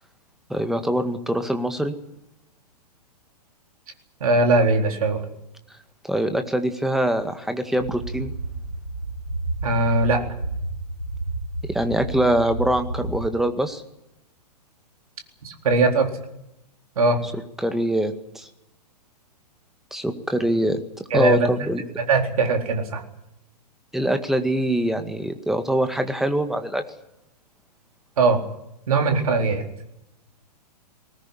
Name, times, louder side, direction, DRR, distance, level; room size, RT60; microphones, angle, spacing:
voice 1, 0.5-1.9 6.0-8.3 11.7-13.8 17.6-18.5 19.9-21.8 23.9-26.8, right 1 dB, ahead, 8 dB, 1.9 m, -24 dB
voice 2, 4.2-5.3 9.6-10.3 15.4-16.1 17.0-17.2 21.1-21.5 22.0-23.0 28.2-28.4 28.9-29.7, right 3 dB, 60° right, 4 dB, 4.1 m, -20 dB
sound 1, 7.8-13.3, right 2 dB, 80° right, 6.2 m, -31 dB
20.5 x 19.0 x 10.0 m, 0.85 s
figure-of-eight pair, 115°, 21 cm